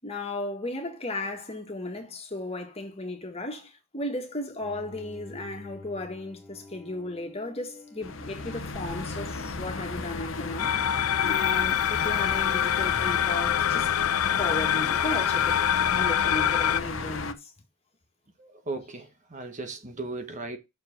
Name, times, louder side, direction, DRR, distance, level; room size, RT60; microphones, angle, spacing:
voice 1, 0.0-10.7 11.2-14.1 14.4-15.6 15.9-17.5, left 1 dB, 30° left, 1.8 m, -35 dB
Bowed string instrument, 4.6-11.8, left 3 dB, ahead, 2.5 m, -50 dB
sound 1, 8.0-17.3, left 3 dB, 60° left, 0.9 m, -34 dB
sound 2, 10.6-16.8, left 10 dB, 85° left, 0.4 m, -25 dB
voice 2, 18.4-20.6, right 3 dB, 35° right, 1.2 m, -37 dB
6.6 x 4.8 x 6.1 m
head